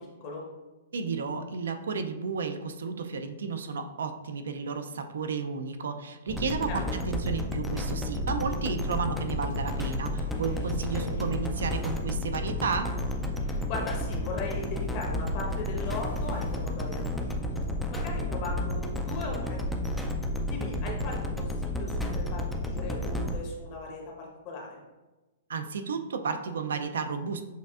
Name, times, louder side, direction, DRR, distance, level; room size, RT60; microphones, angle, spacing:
voice 1, 0.9-12.9 25.5-27.4, right 5 dB, 85° right, 7 dB, 0.4 m, -32 dB
sound 1, 6.3-23.4, left 1 dB, 5° left, 0.3 m, -31 dB
sound 2, 8.9-18.2, equal, 75° left, 1.0 m, -47 dB
voice 2, 13.7-17.6 17.9-20.1 20.5-24.8, left 3 dB, 40° left, -1 dB, 1.0 m, -38 dB
6.4 x 2.5 x 2.4 m, 1.1 s
hypercardioid pair, 150°, 0 cm